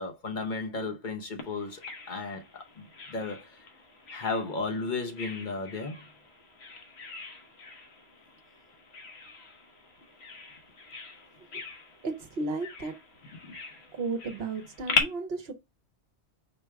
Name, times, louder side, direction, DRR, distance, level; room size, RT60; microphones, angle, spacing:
voice 1, 0.0-1.8 2.1-3.7 4.1-6.0, left 3 dB, 50° left, 0.9 m, -34 dB
Bird vocalization bird call bird song, 1.4-15.0, left 4 dB, 70° left, 1.3 m, -39 dB
voice 2, 12.0-13.0 13.9-15.5, right 3 dB, 65° right, 1.1 m, -34 dB
5.2 x 2.2 x 4.6 m
omnidirectional pair, 1.1 m